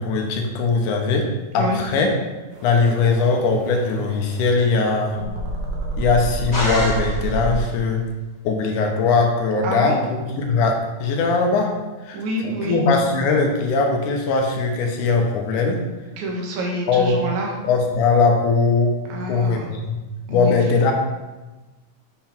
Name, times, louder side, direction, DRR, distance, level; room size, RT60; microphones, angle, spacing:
voice 1, 0.0-2.1 2.6-5.2 6.0-8.1 8.4-11.7 12.1-15.8 16.9-17.2 17.6-20.0 20.3-20.9, left 4 dB, 85° left, 2 dB, 2.5 m, -20 dB
sound 1, 2.5-7.6, right 2 dB, 90° right, 3.1 m, -29 dB
sound 2, 6.5-7.6, left 1 dB, 25° left, 2.2 m, -27 dB
voice 2, 9.6-10.0 12.1-12.8 16.2-17.5 19.1-19.7 20.3-20.5, right 1 dB, 70° right, -1 dB, 2.7 m, -27 dB
7.8 x 5.8 x 4.5 m, 1.2 s
omnidirectional pair, 3.5 m